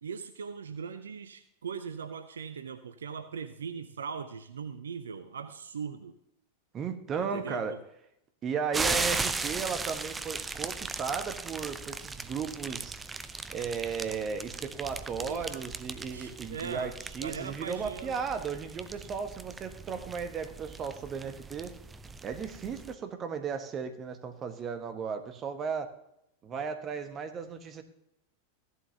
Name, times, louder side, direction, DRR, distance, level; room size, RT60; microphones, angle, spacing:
voice 1, 0.0-6.1 7.2-7.7 15.2-15.7 16.1-16.9 17.2-18.2, right 6 dB, 70° right, 11 dB, 0.6 m, -40 dB
voice 2, 6.7-7.8 8.4-13.0 13.5-21.7 22.2-25.9 26.4-27.8, right 6 dB, 30° right, 7 dB, 1.3 m, -35 dB
sound 1, 8.7-22.9, right 3 dB, 15° right, 0.6 m, -37 dB
15.5 x 11.0 x 2.9 m, 0.78 s
figure-of-eight pair, 90°, 0 cm